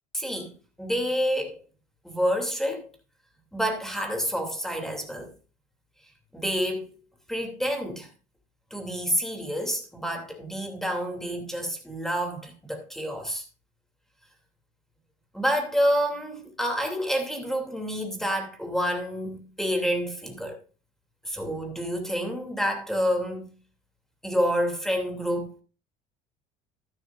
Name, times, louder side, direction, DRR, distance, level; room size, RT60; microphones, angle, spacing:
voice 1, 0.1-0.5 0.8-1.6 2.0-2.9 3.5-5.3 6.3-7.0 7.3-8.1 8.7-13.4 15.3-20.6 21.2-23.5 24.2-25.6, equal, ahead, 2.7 m, -28 dB
12.5 x 11.5 x 2.5 m
supercardioid pair, 95°, 18 cm